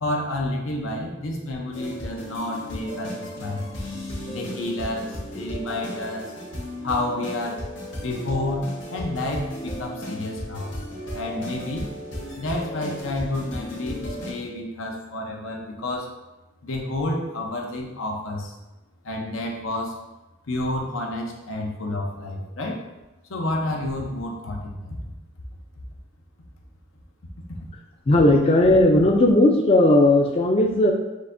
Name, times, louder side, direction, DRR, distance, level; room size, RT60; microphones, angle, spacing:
voice 1, 0.0-3.7 4.3-6.3 6.8-7.6 8.0-10.7 11.1-11.9 12.4-16.1 16.6-18.5 19.0-19.9 20.5-22.8 23.3-25.0, left 1 dB, 85° left, 1 dB, 0.8 m, -30 dB
sound 1, 1.7-14.3, equal, 65° left, 1.4 m, -35 dB
voice 2, 28.1-30.9, left 1 dB, 30° left, 1 dB, 0.3 m, -16 dB
6.3 x 2.7 x 2.6 m, 1.0 s
head